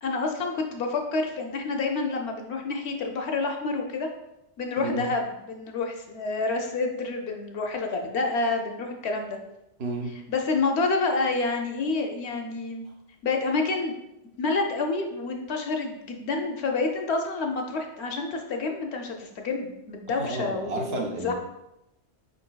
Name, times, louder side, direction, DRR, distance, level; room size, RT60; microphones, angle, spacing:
voice 1, 0.0-4.1 4.6-9.4 10.3-12.8 13.2-13.9 14.4-21.3, left 3 dB, 70° left, 3 dB, 0.8 m, -28 dB
voice 2, 4.8-5.1 9.8-10.1 20.2-21.3, right 2 dB, 60° right, 0 dB, 0.9 m, -31 dB
4.9 x 3.9 x 2.2 m, 0.90 s
omnidirectional pair, 1.2 m